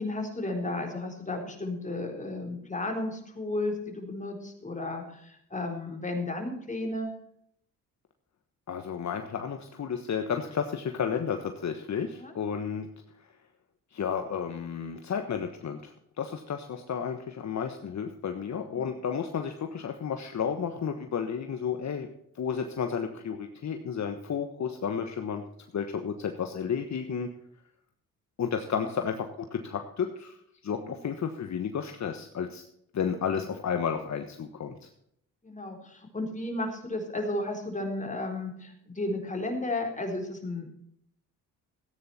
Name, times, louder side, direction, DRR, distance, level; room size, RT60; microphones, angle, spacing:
voice 1, 0.0-7.1 12.2-12.3 18.7-18.9 30.8-30.9 35.4-40.7, left 2 dB, 20° left, 2 dB, 4.0 m, -33 dB
voice 2, 8.7-12.9 13.2-13.3 13.9-25.4 25.7-27.3 28.4-30.4 30.6-32.6 32.9-34.9, left 7 dB, 50° left, 6 dB, 1.3 m, -32 dB
14.5 x 9.6 x 4.3 m, 0.71 s
cardioid pair, 70°, 35 cm